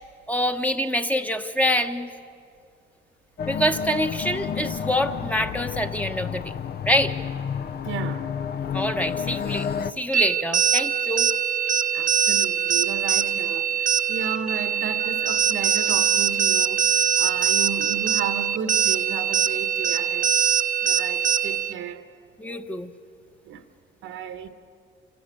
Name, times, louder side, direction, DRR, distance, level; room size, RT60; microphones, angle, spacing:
voice 1, 0.3-2.1 3.5-6.5 6.9-7.1 8.7-9.7 10.0-11.3 22.4-22.9, equal, 5° left, 1.1 m, -25 dB
sound 1, 3.4-9.9, left 7 dB, 55° left, 0.7 m, -30 dB
voice 2, 7.8-8.3 11.9-20.3 20.8-22.1 23.4-23.6 24.0-24.5, right 7 dB, 85° right, 1.3 m, -34 dB
sound 2, 10.1-21.7, right 8 dB, 40° right, 0.6 m, -22 dB
28.0 x 14.5 x 8.3 m
cardioid pair, 90°, 20 cm